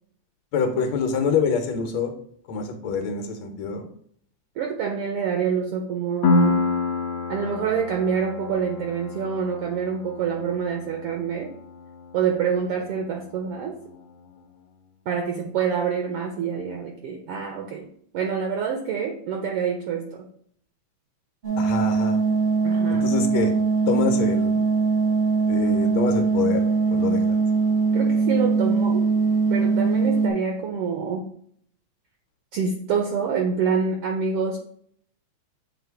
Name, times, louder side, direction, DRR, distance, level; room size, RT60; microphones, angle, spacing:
voice 1, 0.5-2.1 2.5-3.9 21.6-22.2 22.9-23.5 23.9-24.7 25.5-27.4, left 5 dB, 75° left, 5 dB, 1.8 m, -26 dB
voice 2, 4.6-6.6 7.3-11.5 12.1-13.7 15.1-17.9 18.1-20.2 22.6-23.1 27.9-29.1 29.5-31.3 32.5-34.6, right 6 dB, 90° right, 2 dB, 1.3 m, -26 dB
Piano, 6.2-13.6, left 3 dB, 90° left, 1.3 m, -28 dB
sound 1, 21.4-30.3, right 4 dB, 65° right, 0.5 m, -21 dB
8.0 x 2.8 x 4.5 m, 0.63 s
omnidirectional pair, 3.4 m